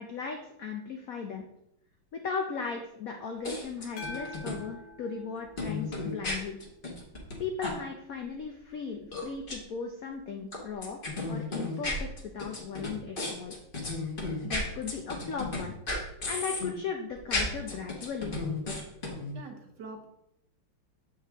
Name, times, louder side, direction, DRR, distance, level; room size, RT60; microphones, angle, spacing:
voice 1, 0.0-1.5 2.1-6.6 7.4-11.0 11.3-12.1 12.3-13.6 14.4-15.7 16.3-18.4, left 5 dB, 75° left, 3 dB, 0.8 m, -37 dB
sound 1, 3.4-4.5 5.6-7.4 7.6-7.7 9.1-9.6 10.5-15.6 15.9-16.7 17.2-19.3, left 2 dB, 35° left, 1.1 m, -33 dB
sound 2, 4.0-6.4, left 2 dB, 90° left, 2.0 m, -45 dB
voice 2, 19.3-20.1, right 3 dB, 65° right, 3 dB, 1.3 m, -44 dB
7.4 x 4.7 x 3.5 m, 0.78 s
omnidirectional pair, 2.2 m